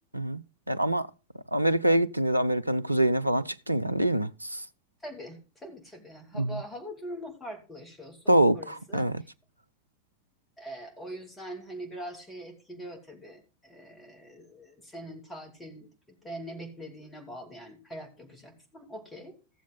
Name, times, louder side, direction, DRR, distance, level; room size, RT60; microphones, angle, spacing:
voice 1, 0.7-1.1 1.5-4.6 6.4-6.6 8.3-9.2, right 1 dB, 85° right, 0.4 m, -25 dB
voice 2, 5.0-9.1 10.6-15.9 16.2-19.4, equal, 15° left, 2.9 m, -43 dB
15.5 x 7.2 x 3.8 m
figure-of-eight pair, 90°, 0 cm